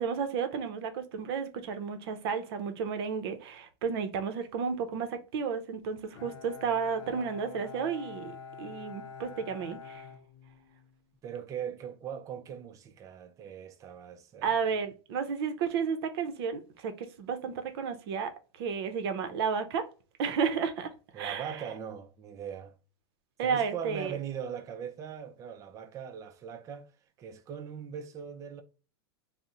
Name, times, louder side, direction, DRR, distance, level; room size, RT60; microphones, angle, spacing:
voice 1, 0.0-8.3 8.6-10.1 14.4-18.3 18.6-19.8 20.2-20.9 21.1-21.5 23.4-24.2, right 6 dB, 60° right, 0.6 m, -32 dB
Bowed string instrument, 6.1-11.0, left 6 dB, 65° left, 0.6 m, -46 dB
voice 2, 11.2-14.8 21.1-22.8 23.4-26.9 27.2-28.6, right 8 dB, 25° right, 0.4 m, -40 dB
2.7 x 2.0 x 3.5 m
hypercardioid pair, 130°, 14 cm